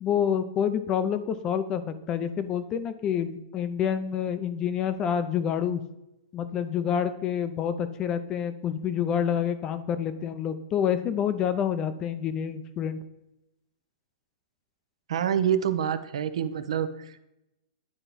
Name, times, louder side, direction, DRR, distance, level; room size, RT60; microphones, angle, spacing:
voice 1, 0.0-5.8 6.3-13.0, left 8 dB, 20° left, 12 dB, 0.4 m, -28 dB
voice 2, 15.1-17.2, right 9 dB, 75° right, 11 dB, 0.7 m, -27 dB
10.0 x 4.5 x 4.0 m, 0.90 s
supercardioid pair, 165°, 3 cm